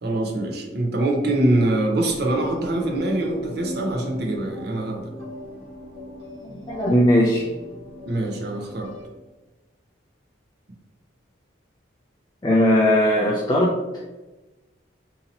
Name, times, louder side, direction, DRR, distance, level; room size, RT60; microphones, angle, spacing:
voice 1, 0.0-5.1 8.0-8.9, right 1 dB, 55° right, 1 dB, 0.6 m, -24 dB
sound 1, 2.1-9.1, equal, 70° right, 1.3 m, -38 dB
voice 2, 6.7-7.4 12.4-13.7, equal, 20° left, -3 dB, 0.3 m, -18 dB
2.8 x 2.7 x 4.0 m, 1.1 s
head